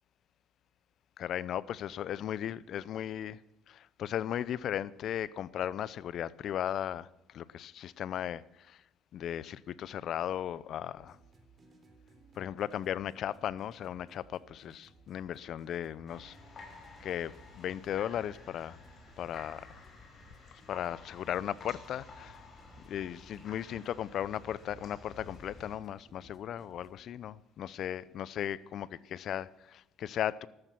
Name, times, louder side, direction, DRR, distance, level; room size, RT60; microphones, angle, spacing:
voice 1, 1.2-3.4 3.7-7.1 7.3-8.8 9.1-11.2 12.4-16.4 17.0-18.8 19.2-19.8 20.7-22.4 22.9-30.5, left 10 dB, 65° left, 0.7 m, -36 dB
sound 1, 11.0-27.1, right 3 dB, 40° right, 3.3 m, -61 dB
sound 2, 16.1-25.8, left 3 dB, 45° left, 5.3 m, -52 dB
13.5 x 13.5 x 6.0 m
supercardioid pair, 70°, 0 cm